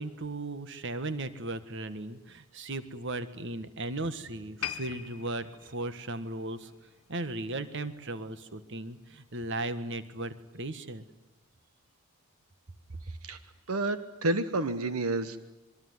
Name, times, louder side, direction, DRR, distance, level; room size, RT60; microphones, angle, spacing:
voice 1, 0.0-6.7 7.1-11.0, right 2 dB, 55° right, 11 dB, 1.6 m, -36 dB
sound 1, 4.6-7.9 8.2-8.5 9.1-9.2, left 9 dB, 90° left, 1.4 m, -42 dB
voice 2, 13.1-13.4 13.7-15.4, right 2 dB, 80° right, 11 dB, 1.3 m, -30 dB
26.5 x 22.5 x 9.6 m, 1.0 s
head